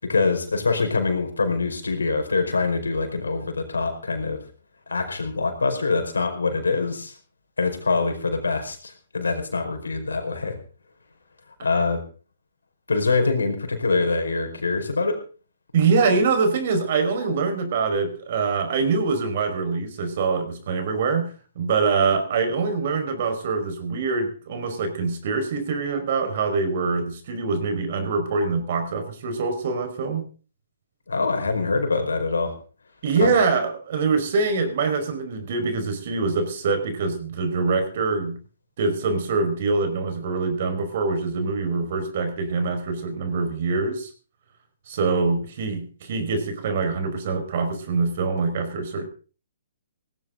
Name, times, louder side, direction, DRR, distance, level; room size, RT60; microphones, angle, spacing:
voice 1, 0.0-4.4 4.9-7.1 7.6-10.6 11.6-12.0 12.9-15.2 31.1-32.5 33.2-33.3, left 4 dB, 90° left, 6 dB, 4.9 m, -24 dB
voice 2, 15.7-30.2 33.0-38.4 38.8-44.1 44.9-49.0, right 4 dB, 55° right, 7 dB, 5.1 m, -24 dB
18.0 x 16.0 x 3.9 m, 0.38 s
hypercardioid pair, 135°, 0 cm